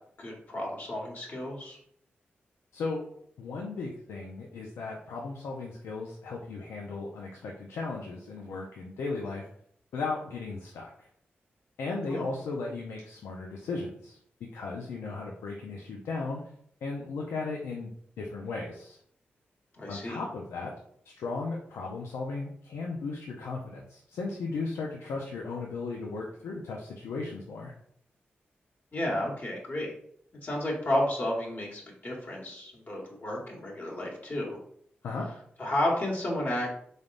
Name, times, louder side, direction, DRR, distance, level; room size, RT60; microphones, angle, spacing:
voice 1, 0.2-1.8 12.0-12.3 19.8-20.2 28.9-29.9 30.4-34.6 35.6-36.7, left 1 dB, 50° left, -2 dB, 1.5 m, -32 dB
voice 2, 2.7-3.0 3.4-9.5 9.9-10.9 11.8-16.4 16.8-19.0 19.9-20.7 21.1-27.7 35.0-35.3, left 3 dB, 90° left, -1 dB, 0.5 m, -36 dB
3.9 x 3.3 x 2.5 m, 0.66 s
cardioid pair, 50°, 4 cm